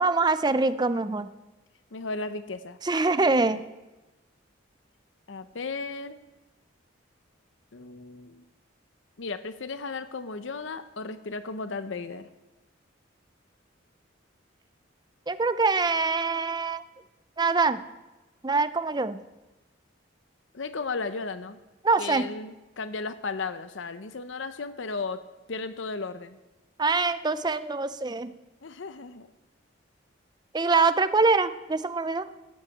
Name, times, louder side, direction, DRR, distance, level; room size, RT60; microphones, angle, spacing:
voice 1, 0.0-1.3 2.8-3.6 15.3-16.8 17.4-17.8 18.4-19.2 21.8-22.3 26.8-28.3 30.5-32.3, right 3 dB, 20° right, 13 dB, 0.5 m, -24 dB
voice 2, 1.9-2.8 5.3-6.2 7.7-8.4 9.2-12.3 20.5-21.6 22.0-25.2 25.5-26.4 28.6-29.3, left 4 dB, 75° left, 12 dB, 0.7 m, -35 dB
13.5 x 8.6 x 8.4 m, 1.1 s
head